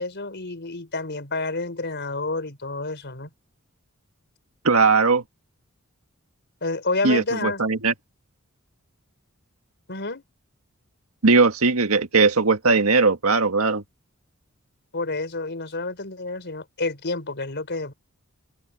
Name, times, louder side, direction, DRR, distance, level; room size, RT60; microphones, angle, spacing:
voice 1, 0.0-3.3 6.6-7.6 9.9-10.2 14.9-17.9, left 3 dB, 55° left, 5.0 m, -29 dB
voice 2, 4.6-5.2 7.0-7.9 11.2-13.8, right 4 dB, 90° right, 1.8 m, -19 dB
open air
head